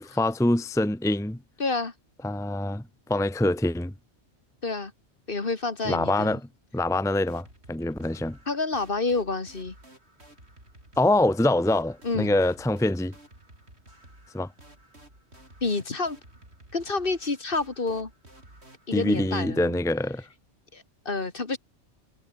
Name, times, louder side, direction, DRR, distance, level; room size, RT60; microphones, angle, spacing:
voice 1, 0.0-1.4 2.2-3.9 5.8-6.4 6.7-8.4 11.0-13.1 14.3-14.5 18.9-20.3, left 1 dB, 5° left, 0.9 m, -25 dB
voice 2, 1.6-1.9 4.6-4.9 5.3-6.4 8.5-9.8 12.0-12.3 15.6-16.2 16.7-18.1 18.9-19.6 20.7-21.6, left 3 dB, 50° left, 2.3 m, -28 dB
sound 1, 7.3-19.3, right 1 dB, 65° right, 8.1 m, -53 dB
omnidirectional pair, 1.2 m